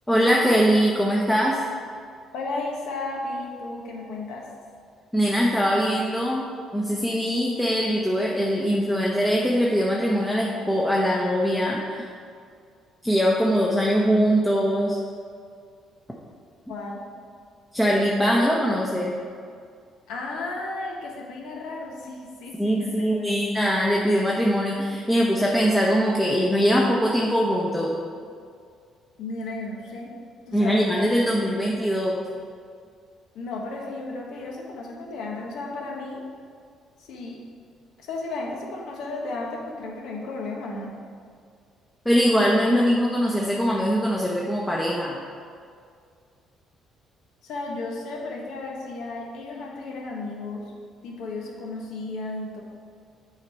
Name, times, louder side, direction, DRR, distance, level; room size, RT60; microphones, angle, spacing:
voice 1, 0.1-1.6 5.1-12.0 13.0-15.0 17.7-19.1 22.6-28.0 30.5-32.2 42.0-45.2, equal, 5° left, -4 dB, 0.8 m, -22 dB
voice 2, 2.3-4.5 16.7-17.0 20.1-23.4 29.2-30.1 30.5-31.3 33.3-36.2 37.0-37.4 38.0-40.9 47.4-50.7 51.0-52.6, left 2 dB, 80° left, -1 dB, 1.2 m, -34 dB
7.2 x 4.0 x 4.6 m, 2.2 s
cardioid pair, 90°, 0 cm